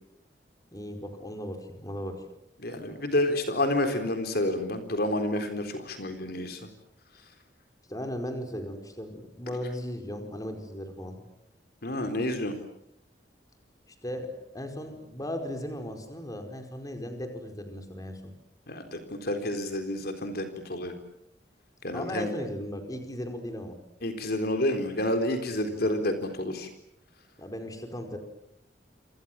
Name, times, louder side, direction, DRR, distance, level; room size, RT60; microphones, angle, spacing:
voice 1, 0.7-2.2 7.9-11.2 14.0-18.3 21.9-23.8 25.7-25.9 27.4-28.2, left 1 dB, 20° left, 5 dB, 4.9 m, -37 dB
voice 2, 2.6-6.6 11.8-12.6 18.7-20.9 21.8-22.3 24.0-26.7, left 1 dB, 60° left, 6 dB, 4.0 m, -29 dB
28.0 x 27.5 x 7.6 m, 0.76 s
head